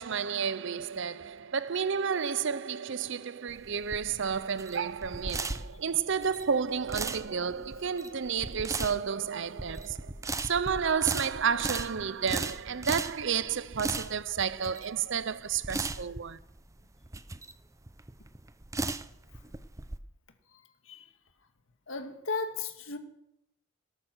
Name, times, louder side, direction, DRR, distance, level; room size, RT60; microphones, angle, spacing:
voice 1, 0.0-10.1 10.4-16.4, right 6 dB, 65° right, 0.6 m, -31 dB
sound 1, 3.5-20.0, right 3 dB, 15° right, 0.6 m, -37 dB
voice 2, 21.9-23.0, left 4 dB, 70° left, 2.0 m, -35 dB
17.5 x 13.0 x 6.2 m
head